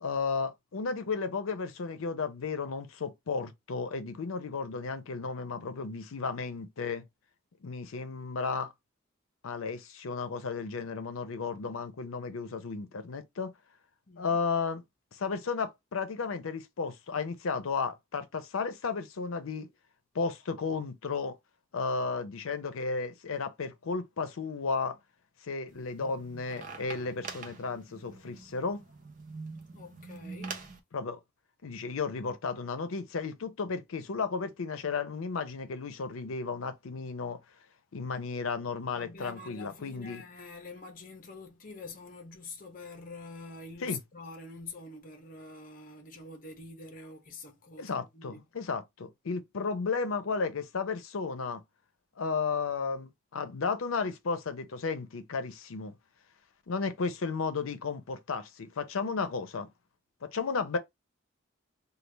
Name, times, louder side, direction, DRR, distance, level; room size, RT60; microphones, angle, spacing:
voice 1, 0.0-7.0 7.6-8.7 9.4-13.6 14.2-14.8 15.1-19.7 20.1-21.4 21.7-25.0 25.4-28.8 30.9-31.2 31.6-37.4 37.9-40.2 43.8-44.0 47.8-51.6 52.2-55.9 56.7-59.7 60.2-60.8, left 4 dB, 90° left, 0.6 m, -33 dB
voice 2, 14.1-14.4 29.7-30.6 39.0-48.4, left 3 dB, 40° left, 0.8 m, -46 dB
sound 1, 25.7-30.8, right 4 dB, 40° right, 0.6 m, -45 dB
3.2 x 2.3 x 3.3 m
head